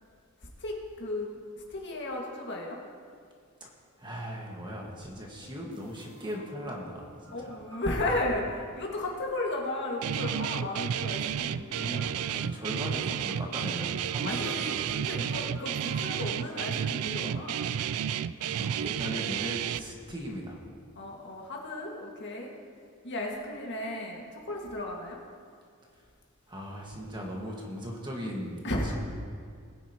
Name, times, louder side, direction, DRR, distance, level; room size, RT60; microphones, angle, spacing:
voice 1, 0.6-1.4 1.7-2.8 7.3-12.2 14.2-17.7 21.0-22.5 23.0-25.2 28.6-28.9, left 1 dB, 55° left, -1 dB, 1.8 m, -34 dB
voice 2, 4.0-7.5 11.7-14.6 18.4-20.6 26.5-28.9, equal, 20° right, -1 dB, 1.6 m, -38 dB
sound 1, 5.7-16.5, right 1 dB, 85° right, 2.6 m, -54 dB
Guitar, 10.0-19.8, right 9 dB, 70° right, 0.3 m, -31 dB
19.5 x 9.7 x 2.9 m, 2.2 s
head